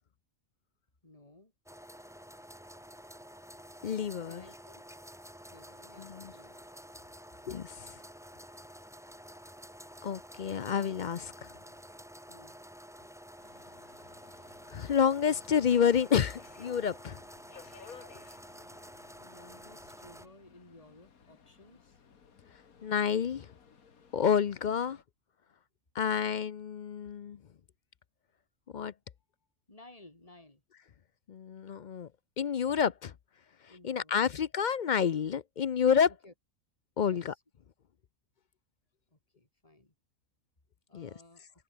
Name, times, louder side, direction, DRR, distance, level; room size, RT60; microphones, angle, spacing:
voice 1, 1.0-1.5 4.3-4.8 5.5-6.6 12.3-12.6 16.9-17.0 19.2-22.0 29.7-30.6 33.7-34.1 36.1-36.3 37.0-37.2 39.1-39.9 40.9-41.5, left 2 dB, 25° left, 2.7 m, -57 dB
sound 1, 1.7-20.3, equal, ahead, 1.8 m, -50 dB
voice 2, 3.8-4.4 6.0-6.3 7.5-7.9 10.0-11.5 14.7-17.2 22.8-23.5 24.1-25.0 25.9-27.4 28.7-28.9 31.3-32.1 32.4-33.1 33.8-36.1 37.0-37.3 40.9-41.1, left 7 dB, 55° left, 0.5 m, -29 dB
Subway metro underground, 13.4-25.0, left 6 dB, 90° left, 2.1 m, -57 dB
omnidirectional pair, 1.5 m